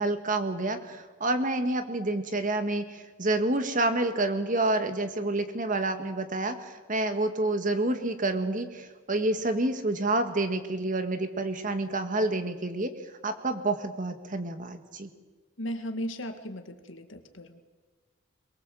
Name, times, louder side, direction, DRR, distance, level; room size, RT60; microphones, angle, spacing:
voice 1, 0.0-12.9 13.2-15.1, right 2 dB, 40° right, 8 dB, 1.9 m, -28 dB
voice 2, 15.6-17.6, equal, 70° left, 7 dB, 2.1 m, -36 dB
23.0 x 22.5 x 7.8 m, 1.3 s
head